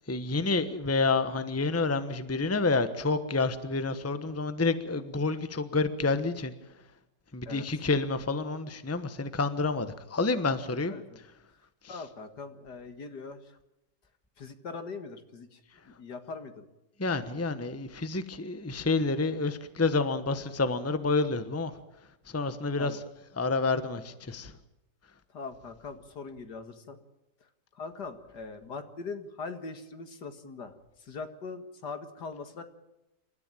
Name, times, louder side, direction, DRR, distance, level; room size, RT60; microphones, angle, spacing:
voice 1, 0.1-6.5 7.3-10.9 17.0-21.7 22.3-22.9 23.4-24.5, left 3 dB, 10° left, 11 dB, 1.0 m, -29 dB
voice 2, 10.9-11.2 11.9-13.6 14.4-15.6 15.9-16.7 22.8-23.0 25.3-27.0 27.7-32.6, left 4 dB, 75° left, 8 dB, 2.5 m, -41 dB
28.0 x 13.5 x 9.0 m, 0.94 s
omnidirectional pair, 1.8 m